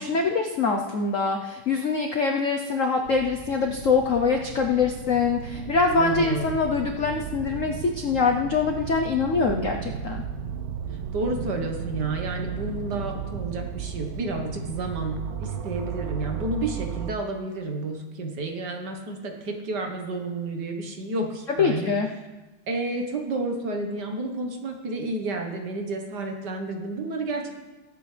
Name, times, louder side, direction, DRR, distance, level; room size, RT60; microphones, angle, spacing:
voice 1, 0.0-10.2 21.5-22.1, left 4 dB, 70° left, 3 dB, 0.7 m, -24 dB
sound 1, 3.0-17.1, right 7 dB, 85° right, 0.8 m, -35 dB
voice 2, 6.0-6.6 11.1-21.9 22.7-27.5, right 2 dB, 55° right, 3 dB, 1.7 m, -31 dB
19.0 x 8.8 x 3.3 m, 1.2 s
omnidirectional pair, 2.4 m